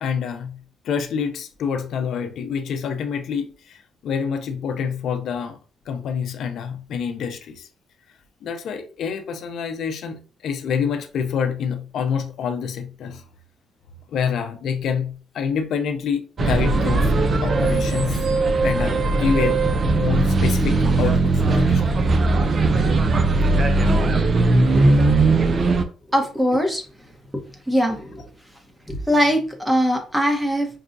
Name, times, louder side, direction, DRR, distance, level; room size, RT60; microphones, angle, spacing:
voice 1, 0.0-5.6 5.9-7.7 8.4-13.2 14.1-17.1 17.4-18.3 18.6-19.6 19.9-22.1, left 7 dB, 70° left, 0.5 m, -27 dB
sound 1, 16.4-25.8, right 3 dB, 40° right, 0.5 m, -19 dB
voice 2, 26.1-26.8 27.7-28.2 28.9-30.7, equal, 5° right, 1.0 m, -21 dB
5.4 x 2.3 x 2.6 m
cardioid pair, 90°, 0 cm